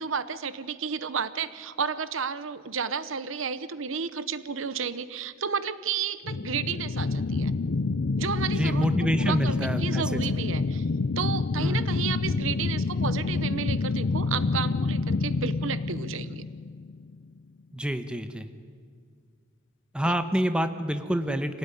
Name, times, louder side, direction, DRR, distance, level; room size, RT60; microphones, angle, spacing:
voice 1, 0.0-7.5 8.2-8.9 9.2-10.9 11.2-16.5 20.0-20.1, right 6 dB, 70° right, 15 dB, 0.9 m, -32 dB
sound 1, 6.3-17.2, left 3 dB, 65° left, 0.6 m, -28 dB
voice 2, 8.6-10.2 11.6-11.9 17.7-18.5 19.9-21.6, equal, 5° right, 8 dB, 1.2 m, -27 dB
26.0 x 18.0 x 9.9 m, 2.1 s
head